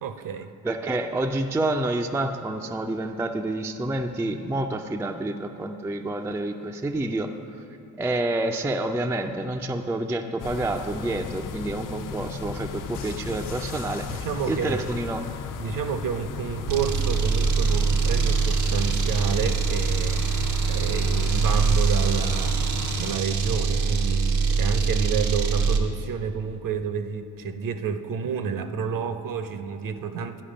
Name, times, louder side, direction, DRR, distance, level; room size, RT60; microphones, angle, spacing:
voice 1, 0.0-0.5 14.1-14.8 15.6-22.6 22.9-30.4, right 6 dB, 45° right, 10 dB, 0.7 m, -30 dB
voice 2, 0.6-7.3 8.0-14.2 14.5-15.2, right 2 dB, 5° right, 4 dB, 0.4 m, -28 dB
sound 1, 10.4-23.2, left 5 dB, 45° left, 0.6 m, -36 dB
sound 2, 12.9-15.4, left 5 dB, 80° left, 1.0 m, -42 dB
sound 3, 16.7-25.9, right 5 dB, 80° right, 0.9 m, -23 dB
11.5 x 5.0 x 5.0 m, 2.8 s
supercardioid pair, 60°, 45 cm